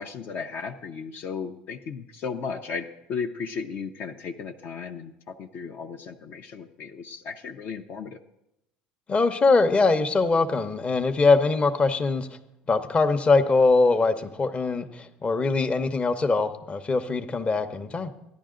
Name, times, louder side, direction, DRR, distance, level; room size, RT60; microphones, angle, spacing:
voice 1, 0.0-8.2, left 5 dB, 55° left, 4 dB, 0.7 m, -35 dB
voice 2, 9.1-12.3 12.7-18.1, left 3 dB, 30° left, 9 dB, 0.9 m, -22 dB
13.5 x 10.5 x 3.8 m, 0.88 s
hypercardioid pair, 75°, 4 cm